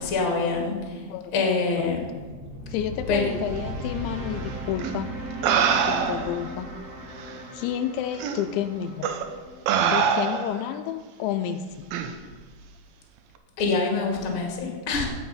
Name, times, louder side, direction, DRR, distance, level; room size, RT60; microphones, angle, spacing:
voice 1, 0.0-1.1 1.3-2.0 3.1-3.3 13.6-15.1, left 3 dB, 40° left, 1 dB, 2.0 m, -25 dB
sound 1, 1.6-10.8, right 1 dB, 35° right, 1.5 m, -38 dB
voice 2, 2.7-5.1 5.7-6.7 7.5-9.2 9.9-11.7, left 10 dB, 85° left, 9 dB, 2.8 m, -30 dB
sound 2, 4.8-4.9 5.4-6.4 7.3-7.4 8.2-8.4 9.0-9.2 9.7-10.6 11.9-12.1, right 7 dB, 80° right, 2.1 m, -23 dB
16.5 x 6.5 x 5.5 m, 1.4 s
omnidirectional pair, 5.3 m